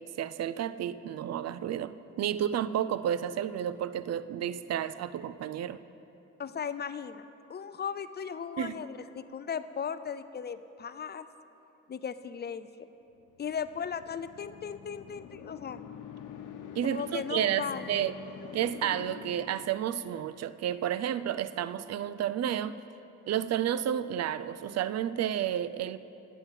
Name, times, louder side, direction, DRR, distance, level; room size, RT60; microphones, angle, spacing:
voice 1, 0.0-5.8 8.6-8.7 16.8-18.1 18.5-22.8 23.3-26.0, right 10 dB, 60° right, 15 dB, 0.5 m, -31 dB
voice 2, 6.4-7.2 7.5-11.3 11.9-12.9 13.4-15.8 16.8-17.9, left 7 dB, 35° left, 13 dB, 0.5 m, -37 dB
sound 1, 13.3-20.3, left 7 dB, 80° left, 0.9 m, -46 dB
10.5 x 9.1 x 7.3 m, 3.0 s
cardioid pair, 90°, 30 cm